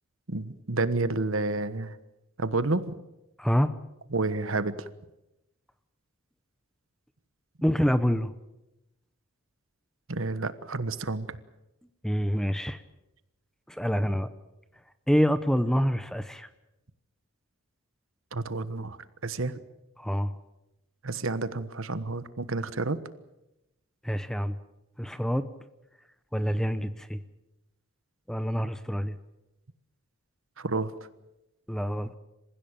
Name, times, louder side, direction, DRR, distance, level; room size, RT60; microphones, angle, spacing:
voice 1, 0.3-2.0 2.4-2.9 4.1-4.9 10.1-11.4 18.3-19.0 19.2-19.6 21.0-23.0 30.6-30.9, right 3 dB, 65° right, 13 dB, 1.3 m, -30 dB
voice 2, 3.4-3.7 7.6-8.3 12.0-12.8 13.7-14.3 15.1-16.5 20.0-20.3 24.0-24.5 25.0-25.4 26.3-27.2 28.3-29.2 31.7-32.1, equal, ahead, 12 dB, 0.8 m, -26 dB
27.5 x 16.0 x 9.0 m, 0.94 s
head